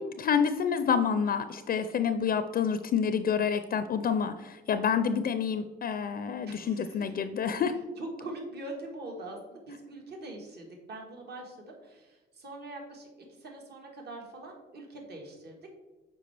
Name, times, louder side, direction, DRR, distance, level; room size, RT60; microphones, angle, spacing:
voice 1, 0.0-7.7, left 7 dB, 50° left, 10 dB, 0.4 m, -28 dB
voice 2, 6.5-7.1 7.7-15.7, right 2 dB, 55° right, 1 dB, 1.5 m, -43 dB
7.6 x 4.6 x 3.3 m, 1.2 s
cardioid pair, 90°, 20 cm